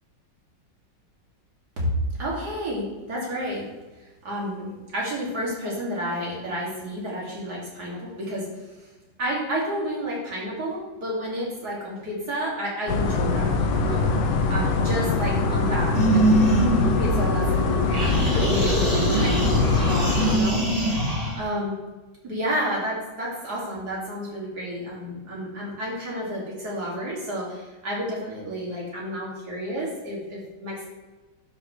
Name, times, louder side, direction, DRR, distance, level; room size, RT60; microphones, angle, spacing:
voice 1, 2.2-3.6 4.2-8.9 9.2-13.5 13.8-14.0 14.5-16.2 16.5-20.6 21.3-21.7 22.2-30.9, equal, 60° right, -5 dB, 3.1 m, -31 dB
sound 1, 12.9-20.4, left 3 dB, 75° left, 1.4 m, -23 dB
sound 2, 15.9-17.6 17.9-21.4, right 1 dB, 20° right, 2.1 m, -23 dB
11.5 x 5.8 x 3.3 m, 1.2 s
omnidirectional pair, 1.9 m